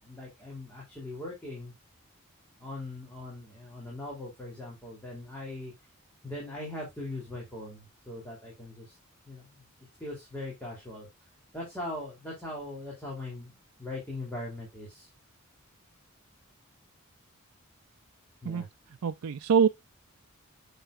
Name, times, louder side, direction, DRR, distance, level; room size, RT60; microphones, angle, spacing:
voice 1, 0.0-1.7 2.6-5.7 6.2-8.9 9.3-9.7 10.0-11.1 11.5-13.5 13.8-15.1 18.4-18.7, left 1 dB, 10° left, 3.0 m, -40 dB
voice 2, 19.0-19.7, right 6 dB, 75° right, 0.4 m, -24 dB
7.7 x 6.8 x 2.4 m
head